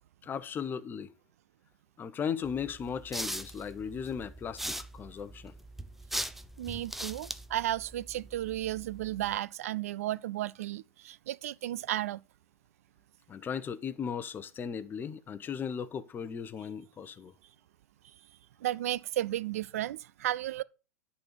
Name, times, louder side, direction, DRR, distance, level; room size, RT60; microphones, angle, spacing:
voice 1, 0.2-1.1 2.0-5.5 13.3-17.3, left 7 dB, 25° left, 0.9 m, -37 dB
sound 1, 2.4-9.4, right 1 dB, ahead, 0.6 m, -41 dB
voice 2, 6.6-12.2 18.6-20.6, right 13 dB, 65° right, 0.5 m, -34 dB
10.5 x 4.2 x 6.8 m
hypercardioid pair, 100°, 8 cm